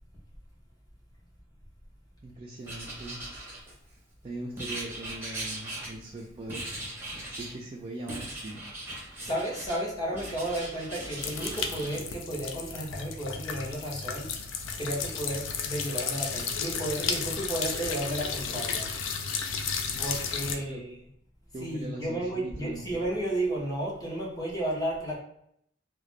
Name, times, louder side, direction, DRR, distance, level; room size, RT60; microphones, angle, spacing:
voice 1, 2.2-3.2 4.2-6.7 7.3-8.6 20.6-20.8 21.5-22.8, right 2 dB, 30° right, -2 dB, 0.3 m, -40 dB
Writing, 2.6-4.0 4.6-6.2 6.5-7.6 8.1-9.8 10.1-12.0, right 1 dB, 10° right, 0.8 m, -39 dB
voice 2, 9.2-14.3 14.7-18.9 20.0-21.0 21.6-25.2, right 1 dB, 20° left, -5 dB, 0.8 m, -33 dB
sound 1, 11.2-20.5, left 6 dB, 80° left, 0.4 m, -33 dB
2.4 x 2.1 x 3.1 m, 0.70 s
head